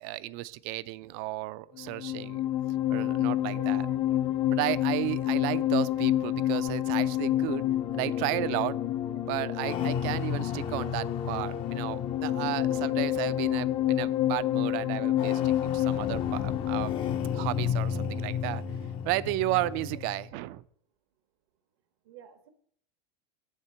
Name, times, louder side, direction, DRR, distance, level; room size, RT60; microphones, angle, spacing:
voice 1, 0.0-2.4 2.9-3.9 4.5-7.6 7.9-8.8 9.3-17.0 17.3-18.6 19.0-20.6, right 17 dB, 60° right, 16 dB, 0.4 m, -33 dB
sound 1, 1.8-20.2, left 11 dB, 40° left, 0.5 m, -29 dB
voice 2, 3.5-4.2 9.1-9.3 19.9-20.0 22.0-22.5, right 9 dB, 75° right, 9 dB, 1.0 m, -49 dB
6.6 x 4.4 x 6.6 m, 0.64 s
supercardioid pair, 130°, 14 cm